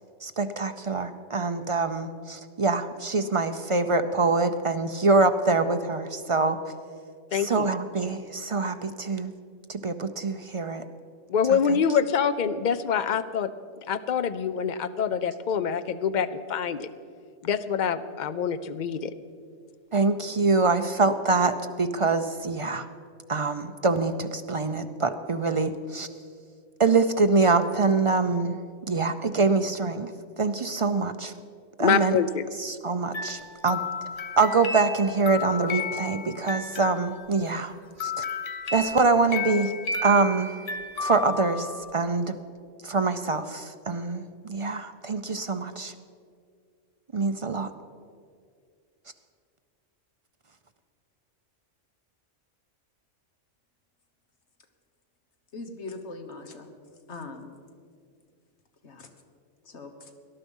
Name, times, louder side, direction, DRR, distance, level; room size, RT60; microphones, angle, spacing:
voice 1, 0.2-6.6 7.3-9.3 9.7-10.8 11.5-11.8 19.9-22.9 23.3-26.1 26.8-28.6 28.9-31.3 31.8-32.2 32.6-33.8 34.4-37.7 38.0-38.2 38.7-39.7 40.0-40.5 41.0-42.4 42.8-45.9 47.1-47.7, right 3 dB, 40° right, 9 dB, 0.4 m, -25 dB
voice 2, 7.3-7.7 11.3-13.5 13.9-16.9 17.4-19.1 31.8-32.4, left 7 dB, 50° left, 12 dB, 0.7 m, -25 dB
sound 1, 33.1-37.5 38.0-42.0, left 4 dB, 80° left, 1.4 m, -33 dB
voice 3, 55.5-56.7 57.1-57.5 58.8-59.1 59.7-59.9, left 3 dB, 65° left, 5 dB, 1.6 m, -40 dB
19.0 x 11.5 x 5.4 m, 2.2 s
omnidirectional pair, 1.3 m